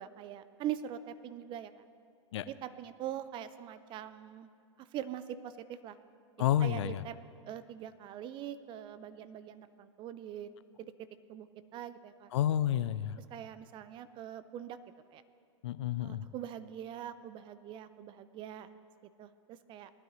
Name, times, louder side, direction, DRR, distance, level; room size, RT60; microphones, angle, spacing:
voice 1, 0.0-1.8 2.5-4.5 4.8-6.0 6.6-7.1 7.5-10.5 10.8-12.3 13.3-14.8 15.1-15.2 16.0-18.7 19.2-19.9, right 10 dB, 30° right, 13 dB, 0.6 m, -43 dB
voice 2, 6.4-7.0 12.3-13.2 15.6-16.3, left 11 dB, 65° left, 15 dB, 0.6 m, -30 dB
19.5 x 12.0 x 3.1 m, 2.3 s
hypercardioid pair, 110°, 16 cm